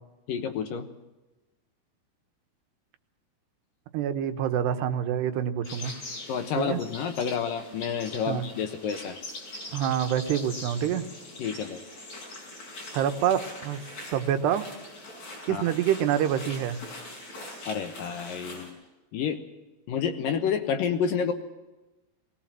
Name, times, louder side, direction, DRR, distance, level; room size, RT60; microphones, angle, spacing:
voice 1, 0.3-0.9 6.3-9.2 11.4-11.8 15.5-15.7 17.7-18.8 19.1-19.4 19.9-21.3, left 7 dB, 65° left, 7 dB, 2.6 m, -29 dB
voice 2, 3.9-5.9 6.6-6.8 8.3-8.4 9.7-11.0 12.9-13.8 14.1-14.6 15.5-16.8, right 10 dB, 85° right, 8 dB, 3.3 m, -26 dB
sound 1, 5.6-18.7, left 2 dB, 45° left, 7.1 m, -42 dB
20.5 x 19.5 x 7.5 m, 1.1 s
omnidirectional pair, 4.7 m